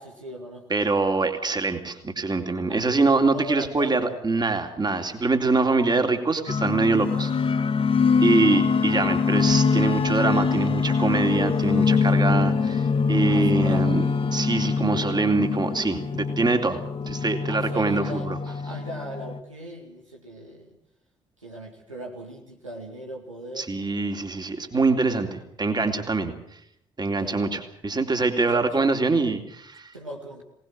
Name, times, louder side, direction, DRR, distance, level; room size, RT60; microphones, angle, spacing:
voice 1, 0.0-0.7 2.7-2.8 3.2-4.2 8.5-8.6 13.3-14.0 17.5-20.7 21.4-23.7 27.1-27.5 28.5-29.0 29.9-30.4, right 1 dB, 85° right, 0 dB, 2.1 m, -38 dB
voice 2, 0.7-7.3 8.2-14.1 14.3-16.8 17.1-18.4 23.6-26.3 27.0-29.9, right 3 dB, 25° right, 5 dB, 3.5 m, -24 dB
sound 1, 6.5-19.4, left 5 dB, 35° left, 1.6 m, -23 dB
24.0 x 19.5 x 7.8 m, 0.70 s
figure-of-eight pair, 45°, 16 cm